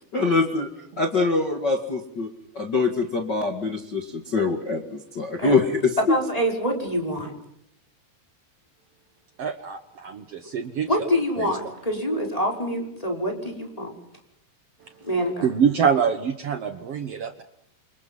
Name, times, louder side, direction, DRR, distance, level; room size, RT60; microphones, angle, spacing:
voice 1, 0.1-0.7 1.0-2.3 2.5-6.0, left 3 dB, 40° left, 3 dB, 1.7 m, -24 dB
voice 2, 6.1-7.3 10.9-13.9 15.0-15.5, equal, 10° left, 1 dB, 5.4 m, -26 dB
voice 3, 9.4-10.9 11.4-11.5 15.4-17.4, right 7 dB, 85° right, 7 dB, 1.3 m, -25 dB
29.5 x 27.0 x 5.6 m, 0.75 s
omnidirectional pair, 4.9 m